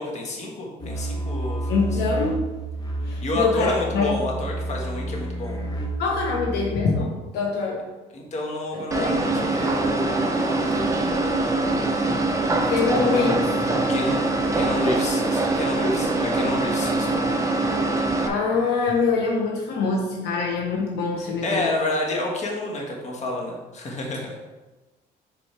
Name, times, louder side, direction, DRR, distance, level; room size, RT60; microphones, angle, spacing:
voice 1, 0.0-1.9 3.2-5.6 8.1-12.0 13.0-13.3 13.9-14.2 14.5-17.2 21.2-24.3, left 2 dB, 40° left, -1 dB, 1.6 m, -30 dB
sound 1, 0.8-6.9, right 2 dB, 25° left, 1.2 m, -30 dB
voice 2, 1.7-2.4 3.0-4.3 6.0-7.8 8.7-9.4 12.7-13.5 18.2-21.7, left 4 dB, 75° left, -1 dB, 1.1 m, -24 dB
sound 2, 8.9-18.3, right 2 dB, 20° right, 0.8 m, -23 dB
7.6 x 4.2 x 3.4 m, 1.2 s
cardioid pair, 110°, 17 cm